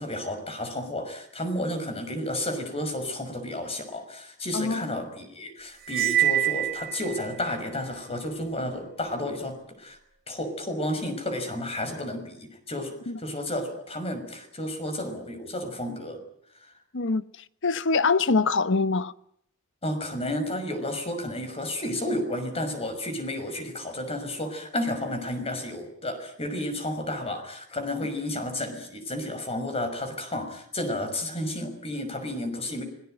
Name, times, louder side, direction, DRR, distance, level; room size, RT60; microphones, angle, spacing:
voice 1, 0.0-10.0 10.3-16.2 19.8-32.8, left 1 dB, 30° left, 5.9 m, -32 dB
voice 2, 4.5-4.9 13.1-13.2 16.9-17.2 17.6-19.1, left 4 dB, 60° left, 1.0 m, -24 dB
Cymbal, 5.9-7.3, right 12 dB, 50° right, 2.1 m, -25 dB
26.0 x 19.0 x 9.2 m
head